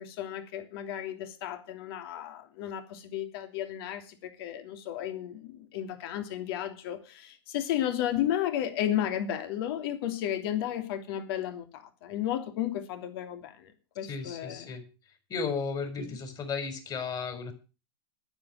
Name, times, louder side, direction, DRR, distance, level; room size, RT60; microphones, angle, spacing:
voice 1, 0.0-14.7 16.0-16.1, left 11 dB, 60° left, 3.0 m, -33 dB
voice 2, 14.1-14.8 15.3-17.5, left 5 dB, 30° left, 4.8 m, -34 dB
10.0 x 10.0 x 7.5 m
hypercardioid pair, 105°, 14 cm